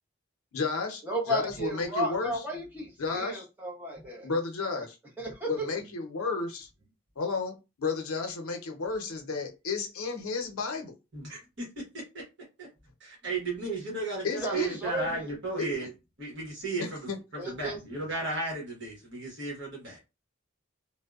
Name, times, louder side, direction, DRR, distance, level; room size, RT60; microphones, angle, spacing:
voice 1, 0.5-1.0 1.3-2.3 3.0-3.4 4.2-5.0 5.5-6.7 7.2-11.0 14.2-14.8 15.6-15.9 16.8-17.2, left 4 dB, 85° left, 4 dB, 0.6 m, -32 dB
voice 2, 1.0-4.3 4.7-4.9 5.2-5.6 14.4-15.3 17.4-17.9, equal, 10° right, -3 dB, 0.7 m, -34 dB
voice 3, 11.1-12.2 12.6-12.7 13.0-15.9 16.2-17.1 17.4-20.0, right 3 dB, 55° right, -3 dB, 1.1 m, -35 dB
2.6 x 2.1 x 2.3 m, 0.26 s
head